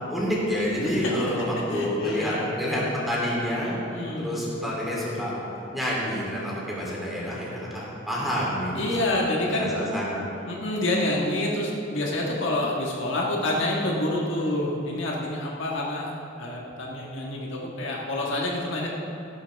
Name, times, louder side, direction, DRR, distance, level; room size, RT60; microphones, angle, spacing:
voice 1, 0.1-3.7 4.2-10.2, equal, ahead, -6 dB, 3.1 m, -28 dB
voice 2, 0.8-1.3 1.7-2.5 3.8-4.5 8.8-9.7 10.5-16.1 16.4-18.9, left 1 dB, 65° left, -3 dB, 1.5 m, -28 dB
15.5 x 11.5 x 3.5 m, 3.0 s
head